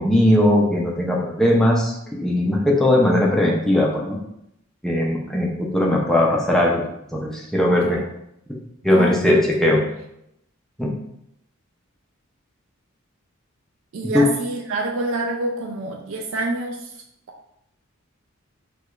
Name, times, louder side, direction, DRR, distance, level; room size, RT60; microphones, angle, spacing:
voice 1, 0.0-4.2 4.8-6.8 7.1-8.0 8.8-9.8 10.8-10.9 14.1-14.3, left 1 dB, ahead, -3 dB, 0.4 m, -19 dB
voice 2, 8.9-9.9 13.9-17.4, right 2 dB, 65° right, 1 dB, 0.3 m, -28 dB
4.6 x 2.3 x 2.3 m, 0.79 s
head